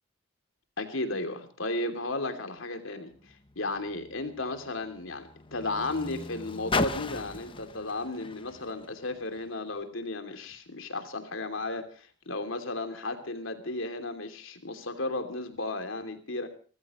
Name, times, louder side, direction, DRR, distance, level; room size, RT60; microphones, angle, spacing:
voice 1, 0.8-3.1 3.6-16.5, left 2 dB, 80° left, 7 dB, 3.0 m, -34 dB
Car, 3.1-9.7 10.5-10.6, left 3 dB, 25° left, 0.9 m, -37 dB
28.5 x 15.0 x 3.1 m, 0.40 s
head